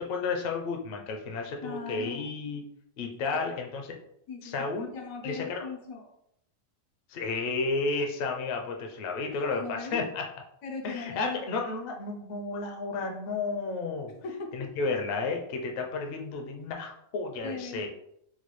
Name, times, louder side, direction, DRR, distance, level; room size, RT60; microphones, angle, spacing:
voice 1, 0.0-2.6 3.0-4.0 4.4-4.9 5.2-5.6 7.1-10.3 10.8-14.1 14.5-17.9, left 3 dB, 60° left, 3 dB, 0.7 m, -32 dB
voice 2, 1.6-2.3 3.3-3.4 4.3-4.6 4.8-6.1 9.3-10.0 10.6-11.4 14.2-14.7 17.4-17.9, left 4 dB, 85° left, 2 dB, 1.2 m, -39 dB
3.9 x 2.3 x 3.1 m, 0.73 s
omnidirectional pair, 1.4 m